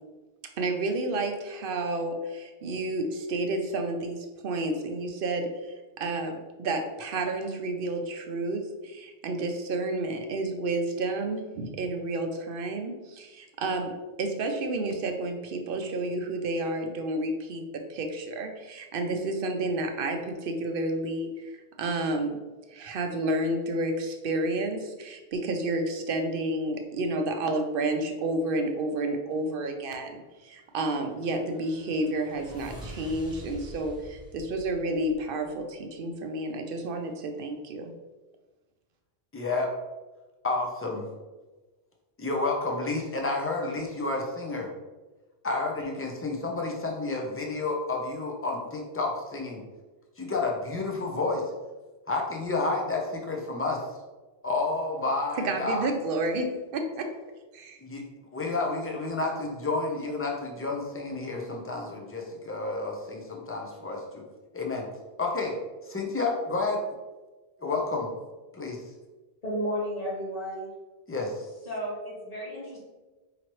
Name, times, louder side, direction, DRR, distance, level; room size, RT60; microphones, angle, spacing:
voice 1, 0.6-13.9 14.2-22.4 22.7-37.9 55.4-56.5 56.7-57.1 57.5-57.8, right 2 dB, 60° right, 4 dB, 0.7 m, -30 dB
sound 1, 31.0-35.8, equal, 5° right, 0.8 m, -46 dB
voice 2, 39.3-39.7 40.4-41.1 42.2-44.7 45.4-49.6 50.2-51.4 52.1-53.8 54.4-55.9 57.8-58.0 58.3-64.2 64.5-64.9 65.2-65.6 65.8-66.8 67.6-68.1 68.5-68.8 71.1-71.4, left 3 dB, 20° left, 0 dB, 0.4 m, -30 dB
voice 3, 69.4-70.7 71.7-72.8, equal, 40° left, -6 dB, 1.1 m, -33 dB
4.9 x 2.9 x 3.0 m, 1.2 s
omnidirectional pair, 1.1 m